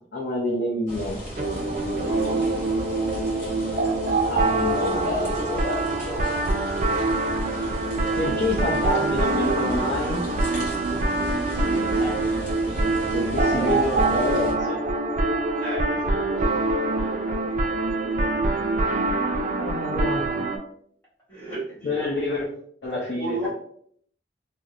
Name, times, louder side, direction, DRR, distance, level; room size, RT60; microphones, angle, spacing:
voice 1, 0.1-1.2 4.2-6.4 8.2-10.3 12.0-12.1 13.1-14.8 19.6-20.3 21.8-22.5 22.8-23.5, left 1 dB, 65° left, -5 dB, 0.6 m, -28 dB
sound 1, 0.9-14.5, equal, 45° left, 1.1 m, -36 dB
sound 2, 1.3-20.6, right 2 dB, 40° right, 0.3 m, -25 dB
voice 2, 15.6-16.2 17.3-17.4 21.3-22.4 23.2-23.5, right 1 dB, 10° left, -10 dB, 1.3 m, -33 dB
2.9 x 2.0 x 2.4 m, 0.63 s
head